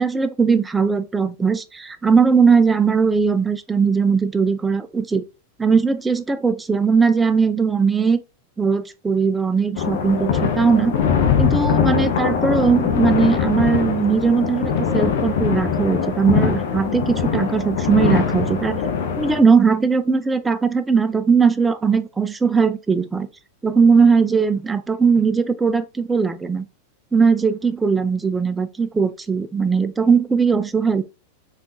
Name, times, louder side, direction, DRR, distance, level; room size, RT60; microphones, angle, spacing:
voice 1, 0.0-5.2 5.6-8.2 8.6-11.0 11.4-18.8 19.2-23.3 23.6-26.6 27.1-31.0, right 5 dB, 10° right, 0.3 m, -19 dB
sound 1, 9.8-19.4, left 7 dB, 55° left, 0.5 m, -21 dB
3.5 x 2.4 x 2.7 m
figure-of-eight pair, 90°, 0 cm